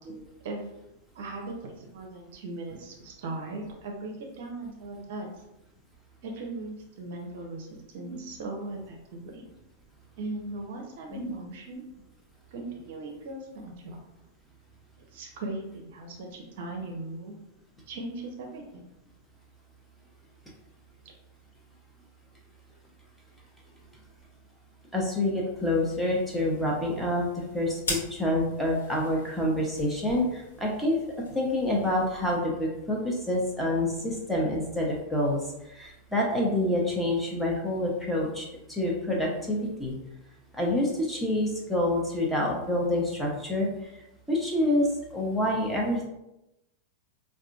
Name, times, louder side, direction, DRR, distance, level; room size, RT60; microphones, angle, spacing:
voice 1, 1.1-5.3 6.2-9.4 10.2-11.9 12.5-14.0 15.1-17.4 17.9-18.8, right 2 dB, 55° right, 2 dB, 0.6 m, -38 dB
voice 2, 24.9-31.0 31.3-35.4 35.7-39.9 40.5-43.7 44.3-46.1, left 1 dB, ahead, -3 dB, 0.9 m, -27 dB
sound 1, 25.6-32.4, left 2 dB, 65° left, 1.1 m, -42 dB
4.7 x 2.5 x 2.4 m, 0.90 s
figure-of-eight pair, 90°, 0 cm